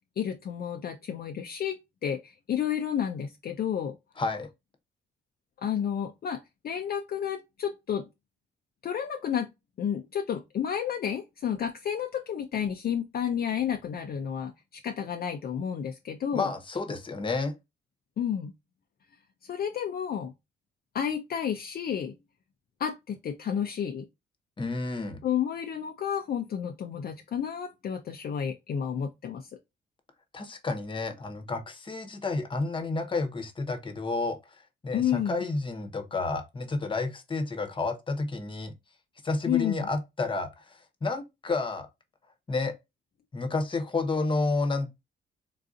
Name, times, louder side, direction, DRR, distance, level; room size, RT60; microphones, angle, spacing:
voice 1, 0.2-4.0 5.6-8.1 8.8-9.5 9.8-16.5 18.2-18.5 19.5-20.3 20.9-22.1 22.8-24.1 25.2-29.5 34.9-35.4 39.5-39.9, left 8 dB, 50° left, 0.5 m, -31 dB
voice 2, 4.2-4.5 16.3-17.5 24.6-25.2 30.3-34.4 34.8-38.7 39.2-41.9 42.5-42.7 43.3-44.9, left 3 dB, 25° left, 0.9 m, -30 dB
3.9 x 2.6 x 2.4 m
cardioid pair, 105°, 19 cm